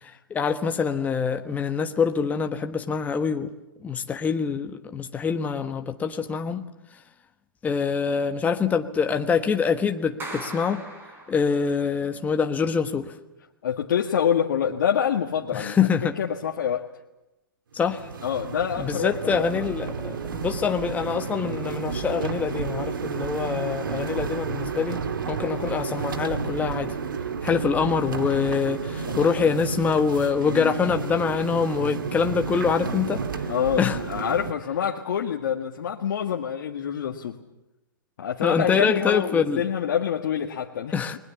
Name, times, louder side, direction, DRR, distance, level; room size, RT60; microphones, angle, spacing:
voice 1, 0.0-3.5 3.8-6.6 7.6-10.8 11.3-13.2 15.5-16.1 17.7-18.1 18.8-25.0 25.3-26.9 27.4-33.5 33.8-34.0 38.4-39.6 40.9-41.2, left 6 dB, 15° left, 1.3 m, -25 dB
Clapping, 10.2-11.8, right 2 dB, 20° right, 5.4 m, -39 dB
voice 2, 13.6-15.9 16.2-16.9 18.2-19.7 29.1-29.5 30.5-30.8 33.5-37.4 38.2-40.9, left 8 dB, 60° left, 1.8 m, -26 dB
sound 1, 17.8-34.5, right 5 dB, 70° right, 2.0 m, -31 dB
30.0 x 21.5 x 7.1 m
figure-of-eight pair, 120°, 11 cm